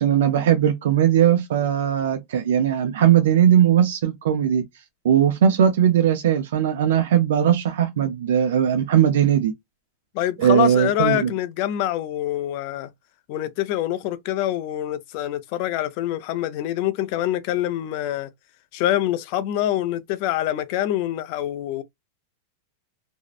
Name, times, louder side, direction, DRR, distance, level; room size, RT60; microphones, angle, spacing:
voice 1, 0.0-4.6 5.0-9.5 10.4-11.3, right 9 dB, 80° right, 0.4 m, -19 dB
voice 2, 10.1-12.9 13.3-18.3 18.7-21.8, left 13 dB, 40° left, 0.3 m, -25 dB
2.6 x 2.0 x 2.3 m
supercardioid pair, 165°, 0 cm